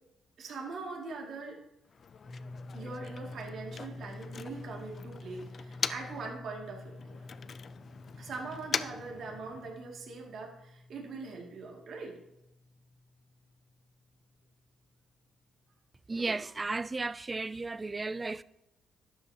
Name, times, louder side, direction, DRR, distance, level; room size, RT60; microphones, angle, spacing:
voice 1, 0.4-1.6 2.7-7.2 8.1-12.2, right 4 dB, 65° right, 2.3 m, -42 dB
Motor vehicle (road), 1.8-6.3 6.6-9.9, left 6 dB, 45° left, 0.5 m, -41 dB
Dist Chr G rock, 2.2-14.0, left 2 dB, 5° left, 2.8 m, -49 dB
voice 2, 16.1-18.4, right 3 dB, 25° right, 0.3 m, -34 dB
12.0 x 8.0 x 2.8 m
cardioid pair, 90°, 0 cm